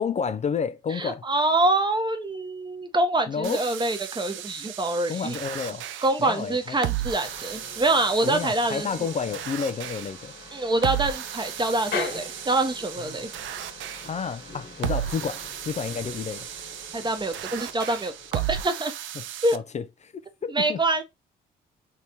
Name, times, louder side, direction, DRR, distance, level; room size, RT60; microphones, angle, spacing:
voice 1, 0.0-1.2 3.3-3.6 5.1-5.8 6.2-6.8 8.2-10.3 13.0-13.3 14.0-16.5 19.2-19.3 19.5-20.8, left 6 dB, 35° left, 0.4 m, -30 dB
voice 2, 1.0-5.4 6.0-8.9 10.5-13.3 16.9-18.9 19.4-19.6 20.5-21.0, right 2 dB, 20° right, 1.0 m, -25 dB
sound 1, 3.4-19.6, right 12 dB, 65° right, 0.5 m, -35 dB
sound 2, 7.2-18.6, left 4 dB, 55° left, 1.3 m, -41 dB
3.3 x 2.8 x 2.8 m
hypercardioid pair, 55°, 21 cm